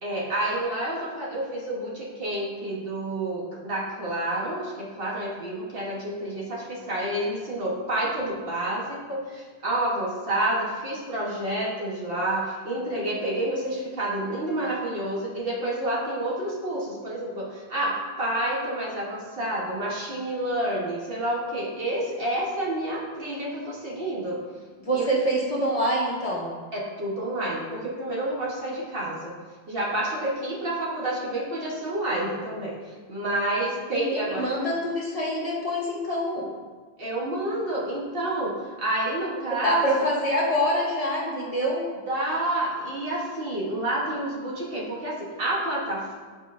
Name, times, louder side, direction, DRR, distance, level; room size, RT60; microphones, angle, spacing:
voice 1, 0.0-24.4 24.9-25.0 26.7-29.3 29.7-34.5 37.0-39.9 42.1-46.2, right 1 dB, 55° right, -5 dB, 1.4 m, -29 dB
voice 2, 24.8-26.5 33.9-36.5 39.6-41.9, equal, 35° left, -3 dB, 0.9 m, -25 dB
8.8 x 4.5 x 2.6 m, 1.4 s
omnidirectional pair, 1.1 m